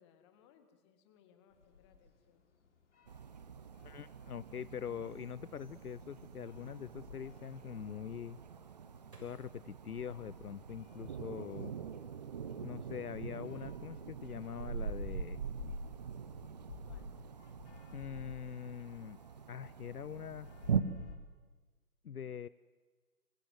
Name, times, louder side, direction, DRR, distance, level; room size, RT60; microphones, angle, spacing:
voice 1, 0.0-2.4 16.8-17.1, left 8 dB, 20° left, 8 dB, 1.9 m, -66 dB
sound 1, 1.5-21.2, left 4 dB, 45° left, 4.1 m, -54 dB
sound 2, 3.1-20.8, right 7 dB, 25° right, 0.9 m, -43 dB
voice 2, 3.8-8.4 9.2-11.7 12.6-15.4 17.9-19.2 19.5-20.5 22.0-22.5, left 8 dB, 65° left, 18 dB, 0.7 m, -43 dB
sound 3, 9.1-11.2 11.7-12.5 12.8-13.2, right 2 dB, 80° right, 6.6 m, -66 dB
26.0 x 25.0 x 8.1 m, 1.4 s
figure-of-eight pair, 145°, 47 cm